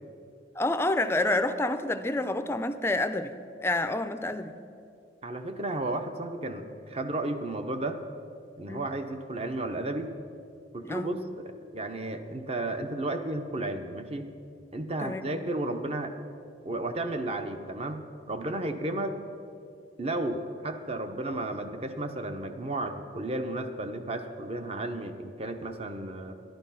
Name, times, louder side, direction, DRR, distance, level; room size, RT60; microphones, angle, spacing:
voice 1, 0.6-3.4 3.6-4.6 8.7-8.9 10.8-11.2 15.0-15.2, left 2 dB, 15° left, 10 dB, 0.5 m, -28 dB
voice 2, 5.2-8.0 8.6-10.1 10.7-11.4 11.7-14.3 14.7-16.1 16.6-19.2 20.0-26.3, right 2 dB, 35° right, 7 dB, 0.8 m, -33 dB
11.5 x 11.5 x 5.7 m, 2.5 s
head